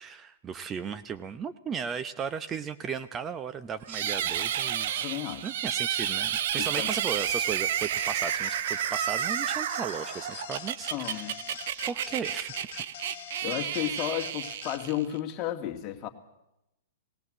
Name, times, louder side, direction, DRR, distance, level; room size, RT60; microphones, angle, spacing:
voice 1, 0.0-4.9 5.4-11.3 11.9-12.8 13.4-13.5, right 6 dB, 25° right, 11 dB, 0.9 m, -36 dB
sound 1, 3.9-15.2, right 10 dB, 60° right, 1.2 m, -31 dB
voice 2, 4.9-5.5 6.6-6.9 10.9-11.4 13.4-16.1, left 12 dB, 35° left, 3 dB, 2.3 m, -33 dB
sound 2, 7.2-14.8, left 13 dB, 55° left, 1.0 m, -44 dB
19.0 x 18.5 x 7.7 m, 0.89 s
hypercardioid pair, 115°, 0 cm